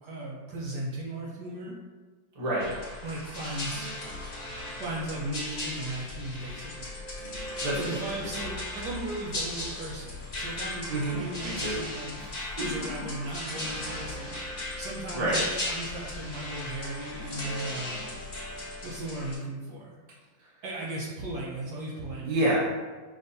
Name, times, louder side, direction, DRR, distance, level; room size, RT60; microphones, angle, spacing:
voice 1, 0.0-1.8 3.0-3.9 4.8-6.9 7.7-12.2 12.5-14.3 14.8-18.2 18.8-19.9 20.6-22.4, right 1 dB, 65° right, -5 dB, 1.2 m, -36 dB
voice 2, 2.3-2.7 7.6-8.4 10.9-11.8 12.2-12.5 15.1-15.4 22.2-22.6, right 1 dB, 25° right, -7 dB, 0.8 m, -29 dB
sound 1, 2.6-19.3, left 1 dB, 35° left, 1.6 m, -37 dB
6.4 x 2.6 x 2.7 m, 1.3 s
omnidirectional pair, 2.1 m